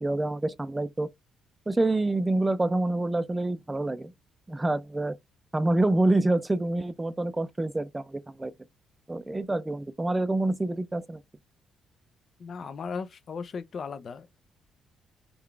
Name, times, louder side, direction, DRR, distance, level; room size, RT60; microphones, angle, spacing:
voice 1, 0.0-1.1 1.7-4.1 4.5-5.1 5.5-8.5 9.1-11.2, right 2 dB, 15° right, 0.4 m, -27 dB
voice 2, 12.4-14.4, left 5 dB, 50° left, 0.5 m, -37 dB
3.7 x 2.3 x 3.3 m
cardioid pair, 90°, 0 cm